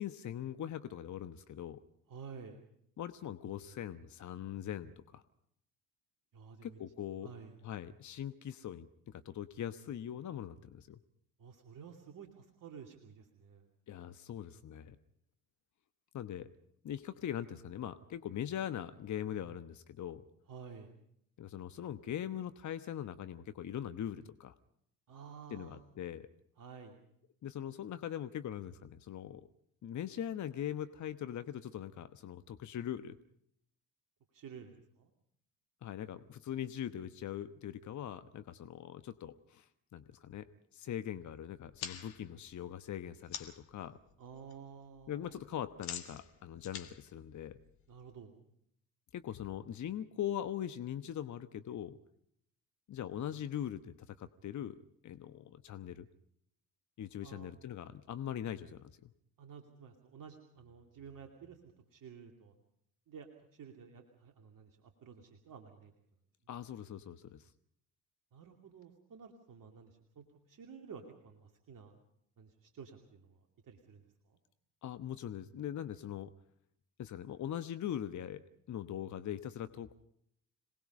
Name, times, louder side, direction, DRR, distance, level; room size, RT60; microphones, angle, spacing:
voice 1, 0.0-1.8 3.0-5.2 6.6-7.3 7.6-11.0 13.9-15.0 16.1-16.5 16.8-20.2 21.4-24.5 25.5-26.3 27.4-29.5 29.8-33.2 35.8-40.5 40.7-44.0 45.1-47.6 49.1-52.0 52.9-56.1 57.0-59.1 66.5-67.5 74.8-76.3 77.0-80.0, left 10 dB, 45° left, 11 dB, 1.1 m, -41 dB
voice 2, 2.1-2.6 6.3-6.8 7.2-7.6 11.4-13.7 20.5-20.9 25.1-25.8 26.6-27.0 34.3-35.1 44.2-45.3 47.9-48.4 57.2-57.5 59.4-61.6 61.9-62.5 63.1-65.9 68.3-71.9 72.4-74.0, right 6 dB, 50° right, 3 dB, 2.8 m, -52 dB
sound 1, 41.6-43.7 44.1-44.5 44.8-48.1, left 9 dB, 75° left, 2.0 m, -47 dB
27.0 x 19.5 x 5.5 m, 0.72 s
hypercardioid pair, 55°, 41 cm